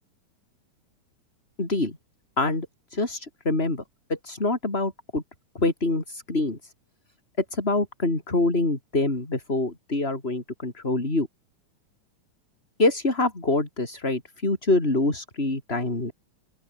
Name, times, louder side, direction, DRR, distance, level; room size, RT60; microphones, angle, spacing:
voice 1, 1.6-2.0 2.4-2.7 2.9-3.8 4.1-5.2 5.5-6.7 7.5-11.3 12.8-16.1, left 2 dB, 20° left, 4.4 m, -25 dB
open air
omnidirectional pair, 3.6 m